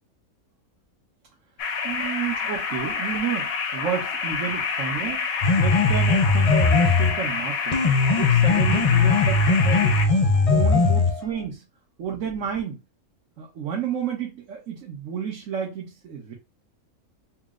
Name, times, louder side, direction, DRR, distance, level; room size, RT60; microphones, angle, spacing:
sound 1, 1.6-10.1, left 5 dB, 80° left, 1.2 m, -28 dB
voice 1, 1.8-5.2 5.6-7.8 8.2-10.1 10.5-11.6 12.0-12.8 13.4-16.3, right 7 dB, 65° right, 1.3 m, -31 dB
sound 2, 5.4-7.2 7.7-11.2, left 4 dB, 35° left, 0.6 m, -19 dB
4.4 x 2.0 x 3.6 m
omnidirectional pair, 1.5 m